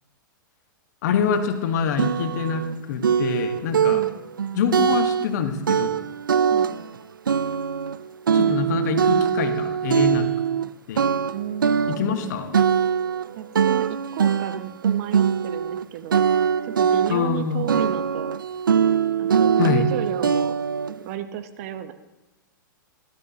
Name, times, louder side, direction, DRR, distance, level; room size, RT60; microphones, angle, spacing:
voice 1, 1.0-2.6 2.9-4.0 4.5-6.0 8.3-10.3 10.9-11.1 11.9-12.6 17.1-17.6 19.6-19.9, left 6 dB, 55° left, 6 dB, 1.6 m, -25 dB
sound 1, 1.3-1.4 2.0-2.7 3.0-5.4 5.7-7.0 7.3-10.7 11.0-15.8 16.1-17.4 17.7-20.9, right 7 dB, 80° right, 0.5 m, -22 dB
voice 2, 6.5-6.9 11.3-11.8 13.4-16.2 16.6-18.4 19.2-20.6 20.9-21.9, right 11 dB, 50° right, 10 dB, 1.0 m, -33 dB
19.0 x 12.5 x 2.9 m, 1.1 s
figure-of-eight pair, 105°, 11 cm